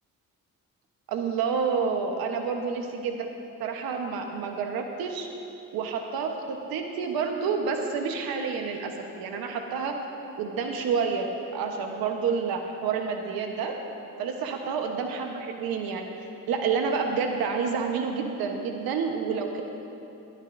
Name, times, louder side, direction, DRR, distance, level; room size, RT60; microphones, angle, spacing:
voice 1, 1.1-3.3 3.6-5.3 5.7-9.9 10.4-13.7 14.2-16.1 16.5-19.6, right 5 dB, 85° right, 4 dB, 1.1 m, -29 dB
19.5 x 11.0 x 2.6 m, 2.8 s
supercardioid pair, 65°, 35 cm